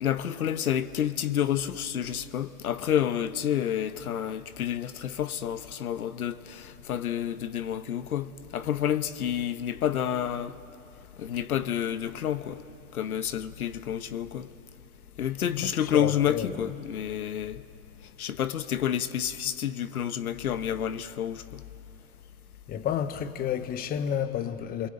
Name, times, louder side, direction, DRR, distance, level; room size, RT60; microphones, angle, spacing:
voice 1, 0.0-10.5 11.2-12.6 12.9-14.5 15.2-17.6 18.2-21.6, left 10 dB, 80° left, 1.1 m, -29 dB
voice 2, 15.6-16.7 22.7-24.9, left 9 dB, 20° left, 1.0 m, -31 dB
29.5 x 22.5 x 8.8 m
hypercardioid pair, 125°, 43 cm